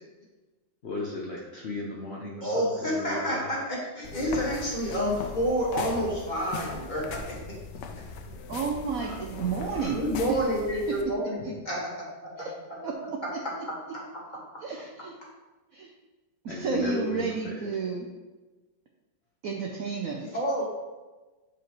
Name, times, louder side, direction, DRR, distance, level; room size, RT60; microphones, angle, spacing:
voice 1, 0.8-3.5 9.0-9.2 9.7-9.9 14.7-14.9 16.5-17.5, left 2 dB, 50° left, -2 dB, 0.8 m, -36 dB
voice 2, 2.4-7.6 9.9-11.4 11.6-12.5 13.4-14.2 20.2-20.6, equal, 25° left, -5 dB, 1.6 m, -29 dB
sound 1, 4.0-11.0, left 4 dB, 70° left, 1.1 m, -39 dB
voice 3, 8.5-10.0 12.4-12.5 12.8-13.4 14.6-15.2 15.7-15.9 16.4-18.1 19.4-20.4, right 5 dB, 65° right, 0 dB, 0.8 m, -31 dB
8.1 x 5.1 x 3.0 m, 1.2 s
omnidirectional pair, 2.1 m